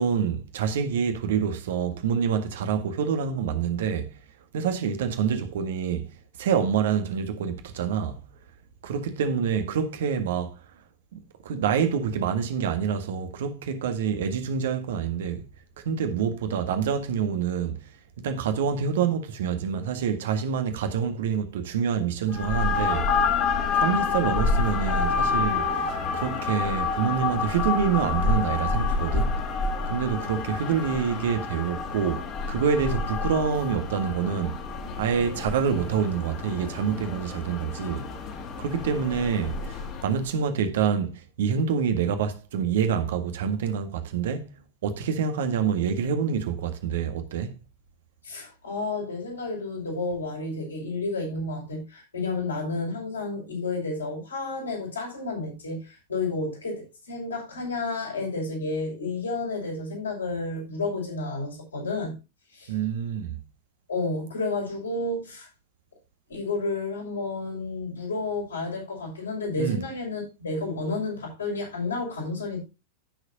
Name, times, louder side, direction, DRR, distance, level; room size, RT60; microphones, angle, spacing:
voice 1, 0.0-4.1 4.5-6.1 6.4-8.3 8.8-10.5 11.1-15.4 15.8-17.8 18.2-23.1 23.7-29.4 29.9-34.6 35.0-38.1 38.6-44.5 44.8-47.5 62.7-63.4 69.6-69.8, right 7 dB, 60° right, 1.7 m, -27 dB
sound 1, 22.3-40.2, left 4 dB, 35° left, 2.5 m, -28 dB
voice 2, 48.2-62.1 62.5-62.7 63.9-65.5 66.3-72.6, left 3 dB, 70° left, 6.0 m, -31 dB
15.5 x 6.6 x 2.8 m
figure-of-eight pair, 90°, 0 cm